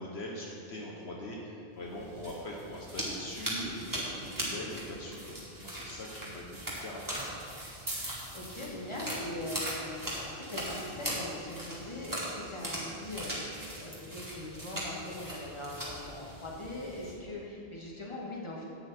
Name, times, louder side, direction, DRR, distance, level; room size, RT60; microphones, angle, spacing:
voice 1, 0.0-7.3, left 1 dB, 65° left, -2 dB, 1.3 m, -42 dB
sound 1, 1.9-17.1, right 1 dB, 15° right, 2.2 m, -39 dB
voice 2, 8.3-18.6, left 1 dB, 25° left, -4 dB, 1.9 m, -41 dB
11.0 x 8.7 x 4.4 m, 2.7 s
omnidirectional pair, 1.2 m